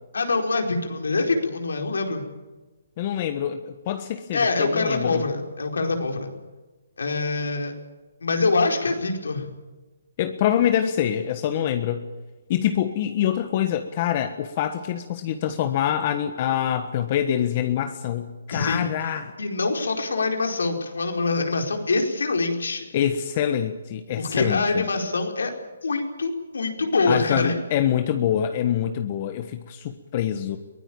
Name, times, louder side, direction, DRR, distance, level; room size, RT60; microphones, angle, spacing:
voice 1, 0.1-2.3 4.3-6.3 7.0-7.7 8.2-9.5 18.5-18.9 19.4-22.8 24.2-25.5 25.8-27.5, left 3 dB, 90° left, 3 dB, 4.7 m, -24 dB
voice 2, 3.0-5.2 10.2-12.0 12.5-19.3 22.9-24.8 27.1-30.6, left 10 dB, 35° left, 8 dB, 1.4 m, -25 dB
23.0 x 17.5 x 8.8 m, 1.2 s
hypercardioid pair, 155°, 0 cm